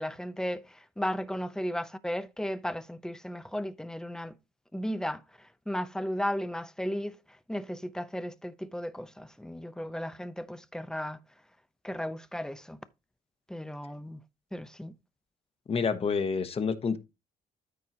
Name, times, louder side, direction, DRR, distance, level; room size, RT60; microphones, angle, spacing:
voice 1, 0.0-4.3 4.7-5.2 5.7-7.2 7.5-11.2 11.8-12.8 13.5-14.2 14.5-14.9, equal, 5° left, 0.6 m, -35 dB
voice 2, 15.7-17.0, left 5 dB, 40° left, 1.1 m, -28 dB
13.0 x 4.6 x 2.8 m
cardioid pair, 105°, 15 cm